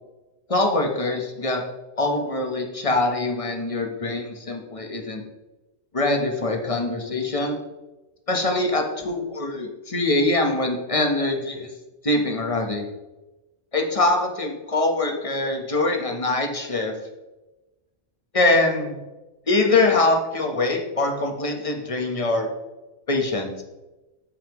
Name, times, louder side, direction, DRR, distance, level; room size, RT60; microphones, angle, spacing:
voice 1, 0.5-1.6 2.0-5.2 5.9-7.6 8.3-11.7 12.0-12.8 13.7-17.0 18.3-19.0 19.5-22.5 23.1-23.6, left 2 dB, 30° left, 3 dB, 1.2 m, -23 dB
13.5 x 5.7 x 3.1 m, 1.1 s
omnidirectional pair, 1.1 m